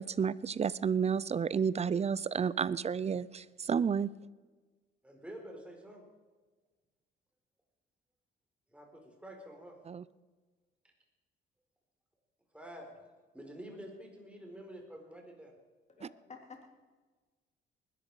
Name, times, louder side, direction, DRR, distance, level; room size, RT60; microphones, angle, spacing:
voice 1, 0.0-4.1 9.9-10.0, right 6 dB, 35° right, 20 dB, 0.5 m, -31 dB
voice 2, 5.0-6.0 8.7-9.8 12.5-13.1 13.3-15.5, equal, 5° right, 1 dB, 4.6 m, -48 dB
voice 3, 15.9-16.7, left 5 dB, 35° left, 2 dB, 3.3 m, -52 dB
20.0 x 13.0 x 4.9 m, 1.3 s
cardioid pair, 90°, 20 cm